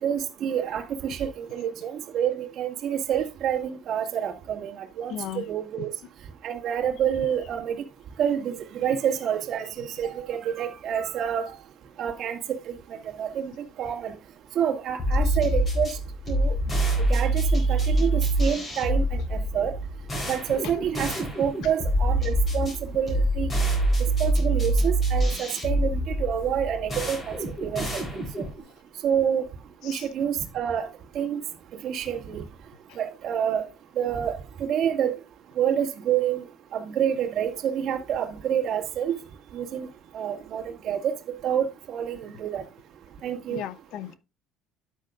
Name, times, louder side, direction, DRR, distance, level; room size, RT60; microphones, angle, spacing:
voice 1, 0.0-5.9 6.4-7.8 8.2-11.5 12.0-13.5 13.8-14.1 14.5-16.0 16.3-16.6 17.1-19.7 20.3-21.1 21.4-23.5 24.0-28.4 29.0-29.4 29.8-30.9 31.1-31.4 31.8-32.4 33.0-33.6 34.0-35.2 35.6-36.4 36.7-39.2 39.5-39.9 40.1-42.6 43.2-43.6, right 9 dB, 40° right, 2.0 m, -28 dB
voice 2, 5.1-5.5 15.3-15.4 20.6-20.7 29.8-30.1 32.9-33.0 43.5-44.2, left 11 dB, 55° left, 0.7 m, -36 dB
sound 1, 15.0-28.6, right 1 dB, 20° left, 3.9 m, -25 dB
12.0 x 9.0 x 2.5 m
cardioid pair, 180°, 0 cm